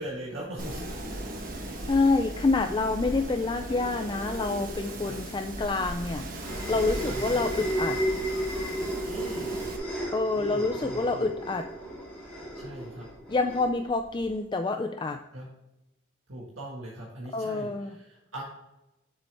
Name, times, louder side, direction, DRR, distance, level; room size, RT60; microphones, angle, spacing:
voice 1, 0.0-1.3 5.0-5.2 7.1-7.4 9.1-9.7 10.3-11.3 12.5-13.1 15.3-15.5 16.3-18.4, right 1 dB, 85° right, -4 dB, 1.6 m, -40 dB
Wind, 0.6-9.8, right 1 dB, 45° right, 1.2 m, -37 dB
voice 2, 1.9-6.3 6.7-8.0 10.1-11.7 13.3-15.2 17.3-18.0, left 3 dB, 25° left, 7 dB, 0.3 m, -27 dB
sound 1, 5.5-14.4, right 1 dB, 5° left, 2.0 m, -34 dB
7.2 x 7.0 x 3.3 m, 0.93 s
head